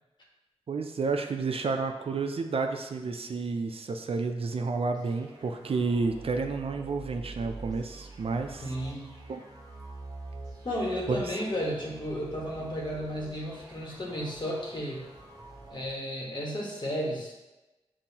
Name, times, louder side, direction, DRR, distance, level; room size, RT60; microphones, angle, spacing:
voice 1, 0.7-8.6 9.3-9.4 11.1-11.2, right 4 dB, 60° right, 5 dB, 0.4 m, -30 dB
sound 1, 4.9-16.0, right 2 dB, 35° right, 1.2 m, -46 dB
voice 2, 8.6-9.1 10.6-15.0 15.7-17.4, equal, 45° left, -3 dB, 1.4 m, -33 dB
7.2 x 2.6 x 2.8 m, 1.1 s
wide cardioid pair, 65°, 11 cm